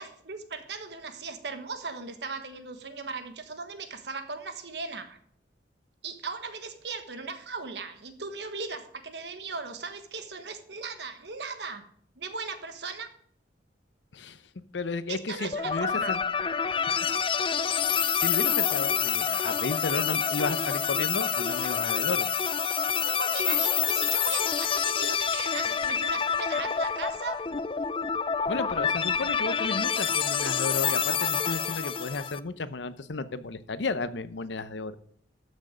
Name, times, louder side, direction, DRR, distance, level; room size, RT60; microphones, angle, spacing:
voice 1, 0.0-5.2 6.0-11.8 12.2-13.1 15.1-16.1 23.0-27.4, right 4 dB, 70° right, 8 dB, 1.2 m, -38 dB
voice 2, 14.7-16.2 17.9-22.3 28.5-35.0, left 3 dB, 90° left, 13 dB, 0.8 m, -33 dB
sound 1, 15.5-32.4, left 7 dB, 30° left, 0.4 m, -27 dB
13.0 x 6.4 x 5.0 m, 0.63 s
head